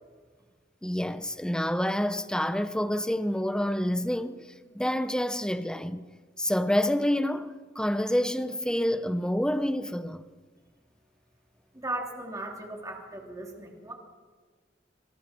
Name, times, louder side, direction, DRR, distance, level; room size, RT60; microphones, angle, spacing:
voice 1, 0.8-4.4 4.7-6.0 6.4-10.2, equal, 5° left, 0.9 m, -28 dB
voice 2, 11.7-13.9, right 2 dB, 20° right, 3.4 m, -37 dB
27.5 x 26.0 x 4.6 m
head